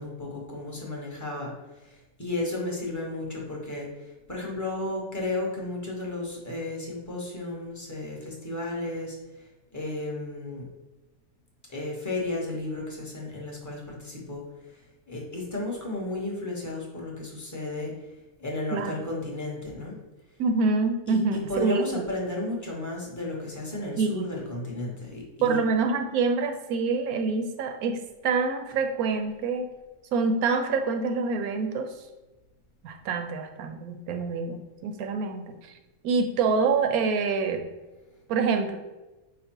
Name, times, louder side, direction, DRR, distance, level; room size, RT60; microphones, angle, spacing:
voice 1, 0.0-10.7 11.7-18.1 18.4-20.0 21.1-25.6 28.7-28.8, left 2 dB, 15° left, -2 dB, 0.7 m, -34 dB
voice 2, 20.4-21.8 24.0-24.3 25.4-29.7 30.1-31.9 32.8-35.5 36.0-37.6 38.3-38.8, right 4 dB, 80° right, 6 dB, 1.1 m, -26 dB
5.1 x 2.1 x 4.4 m, 1.1 s
omnidirectional pair, 1.5 m